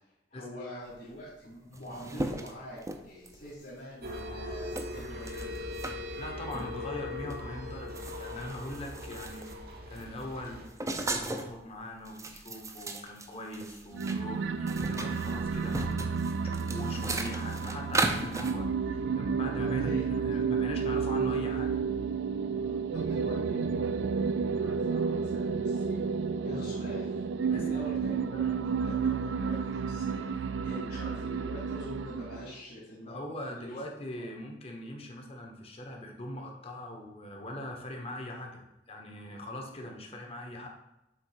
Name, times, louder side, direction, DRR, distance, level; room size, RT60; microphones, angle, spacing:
voice 1, 0.3-5.5 17.1-17.6 19.6-20.0 22.5-26.2 26.4-27.2 27.5-33.8 34.1-34.2, left 1 dB, 55° left, -9 dB, 2.5 m, -45 dB
sound 1, 1.3-1.4 1.5-3.5 4.1-4.2 4.8-6.0 6.5-6.7 7.3-7.4 7.7-9.6 9.9-11.6 12.0-14.2 14.5-18.5, right 2 dB, 20° right, 0.6 m, -36 dB
sound 2, 4.0-10.7, left 2 dB, 60° right, 0.9 m, -40 dB
voice 2, 6.0-9.5 9.9-10.6 11.0-21.8 27.5-27.6 33.1-38.6 38.9-40.7, left 1 dB, 35° left, 1 dB, 1.1 m, -41 dB
sound 3, 13.9-32.5, right 5 dB, 80° right, 0.4 m, -31 dB
7.5 x 3.2 x 4.9 m, 0.91 s
head